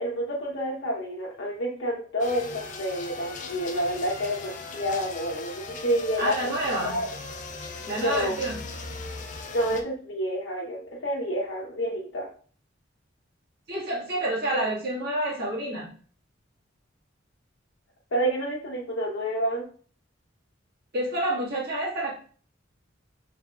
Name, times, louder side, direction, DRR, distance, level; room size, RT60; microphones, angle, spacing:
voice 1, 0.0-6.4 6.8-7.1 7.9-8.3 9.5-12.3 18.1-19.6, equal, 70° left, -4 dB, 0.9 m, -29 dB
sound 1, 2.2-9.8, left 4 dB, 40° left, 0.4 m, -39 dB
voice 2, 6.2-7.0 7.9-8.6 13.7-15.9 20.9-22.1, right 1 dB, 55° right, -4 dB, 1.5 m, -28 dB
5.6 x 3.4 x 2.2 m, 0.43 s
head